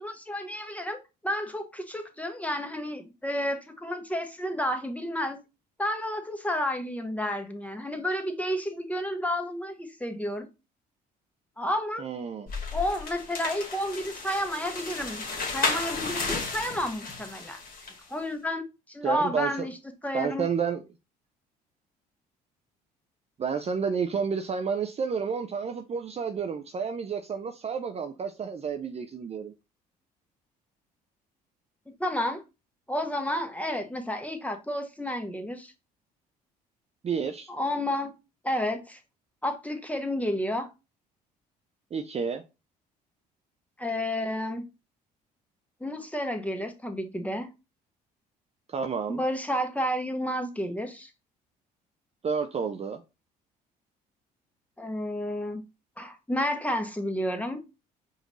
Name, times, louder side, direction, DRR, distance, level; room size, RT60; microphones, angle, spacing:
voice 1, 0.0-5.4 5.8-10.5 11.6-12.1 12.7-15.2 15.5-17.6 18.1-19.7 20.0-20.5 32.0-32.4 32.9-35.7 37.5-38.1 38.4-39.0 39.4-40.7 43.8-44.6 45.8-47.5 49.1-51.1 54.8-55.6 56.0-57.6, left 1 dB, 5° left, 1.0 m, -31 dB
voice 2, 12.0-12.5 19.0-19.7 20.1-20.8 23.4-29.5 37.0-37.5 41.9-42.4 48.7-49.2 52.2-53.0, right 6 dB, 30° right, 0.5 m, -30 dB
sound 1, 12.5-18.0, left 4 dB, 45° left, 1.5 m, -33 dB
4.9 x 2.6 x 3.1 m
hypercardioid pair, 60°, 20 cm